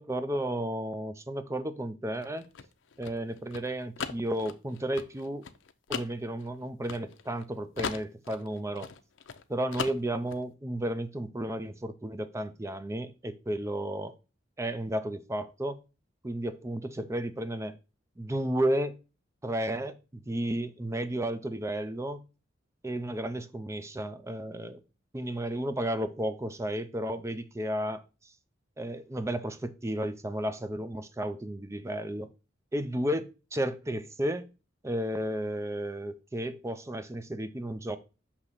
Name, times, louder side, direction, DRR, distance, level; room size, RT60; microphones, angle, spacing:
voice 1, 0.0-2.5 3.0-5.4 5.9-8.9 9.5-14.1 14.6-15.8 16.2-17.8 18.2-18.9 19.4-22.2 22.8-24.8 25.1-28.0 28.8-32.3 32.7-34.5 34.8-38.0, right 1 dB, 15° right, 0.5 m, -33 dB
sound 1, 2.1-7.4 7.8-9.4 9.7-10.4, left 6 dB, 75° left, 0.6 m, -38 dB
6.5 x 2.9 x 5.5 m
head